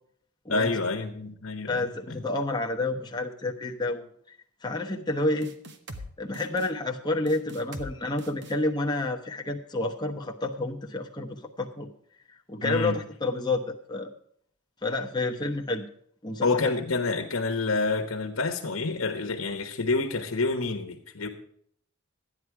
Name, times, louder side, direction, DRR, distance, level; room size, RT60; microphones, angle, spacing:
voice 1, 0.5-2.2 12.6-13.0 16.4-21.3, left 3 dB, 90° left, 4 dB, 1.2 m, -28 dB
voice 2, 1.7-4.0 4.6-5.5 6.2-11.9 12.5-14.1 14.8-15.9 16.2-16.7, left 2 dB, 20° left, 1 dB, 1.0 m, -29 dB
sound 1, 5.4-6.1 6.3-6.7 7.3-7.9 8.2-8.5, right 1 dB, 60° right, 1.2 m, -41 dB
12.5 x 9.8 x 4.8 m, 0.64 s
head